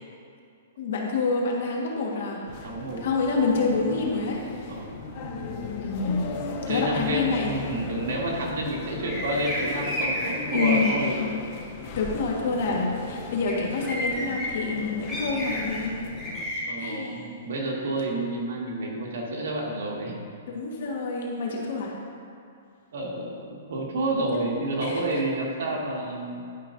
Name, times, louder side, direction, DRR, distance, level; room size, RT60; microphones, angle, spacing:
voice 1, 0.8-2.6 3.0-4.7 5.8-6.3 6.7-7.5 10.5-10.9 11.2-11.3 11.8-16.0 16.4-17.2 20.5-21.9 24.3-24.4 24.8-25.0, left 4 dB, 65° left, -1 dB, 1.4 m, -27 dB
sound 1, 2.5-16.5, left 4 dB, 35° left, 0.7 m, -38 dB
voice 2, 2.6-3.0 4.7-5.0 6.7-11.3 16.6-20.2 22.9-26.4, right 1 dB, 75° right, -2 dB, 1.7 m, -29 dB
sound 2, 9.1-10.9 13.4-13.5 13.8-14.5 15.1-15.8 16.2-16.6, equal, ahead, 1.7 m, -30 dB
11.5 x 5.3 x 2.6 m, 2.4 s
hypercardioid pair, 160°, 0 cm